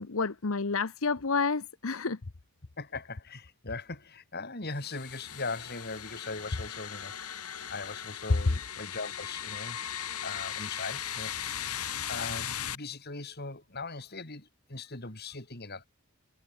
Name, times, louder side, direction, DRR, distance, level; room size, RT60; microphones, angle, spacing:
voice 1, 0.0-2.2, left 4 dB, 65° left, 1.0 m, -30 dB
voice 2, 2.8-9.8 10.1-11.3 11.6-11.8 12.0-15.9, left 3 dB, 45° left, 3.9 m, -40 dB
sound 1, 4.8-12.8, left 9 dB, 85° left, 6.3 m, -38 dB
head